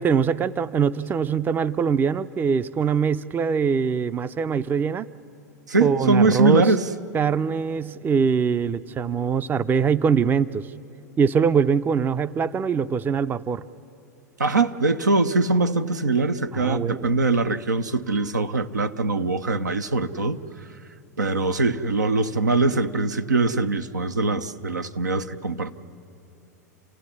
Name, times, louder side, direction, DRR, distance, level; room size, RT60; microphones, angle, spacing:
voice 1, 0.0-5.1 5.8-6.7 7.1-10.7 11.2-13.6 16.5-17.1, right 6 dB, 20° right, 14 dB, 0.5 m, -23 dB
voice 2, 5.7-6.8 14.4-20.4 21.2-25.7, right 3 dB, 85° right, 7 dB, 0.8 m, -22 dB
28.0 x 16.0 x 9.8 m, 2.7 s
hypercardioid pair, 95°, 9 cm